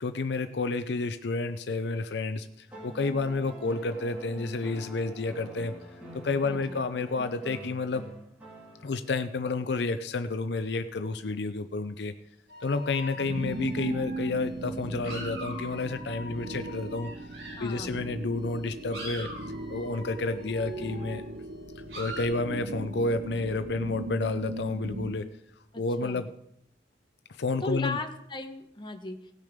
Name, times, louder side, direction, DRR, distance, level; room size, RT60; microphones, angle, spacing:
voice 1, 0.0-5.7 6.2-8.1 8.8-12.1 12.6-17.1 17.6-19.3 19.7-21.2 22.0-25.2 25.8-26.3 27.4-28.0, left 3 dB, 70° left, 10 dB, 0.6 m, -30 dB
sound 1, 2.7-9.1 10.6-10.7, right 1 dB, 10° right, 3.2 m, -45 dB
voice 2, 6.4-6.8 17.6-18.0 25.7-26.3 27.6-29.3, left 2 dB, 25° left, 4 dB, 1.1 m, -37 dB
sound 2, 12.5-17.9 18.4-22.3, equal, 80° right, 5.6 m, -44 dB
sound 3, 13.1-25.1, right 2 dB, 60° right, 0.9 m, -38 dB
17.5 x 6.5 x 5.1 m, 0.78 s
head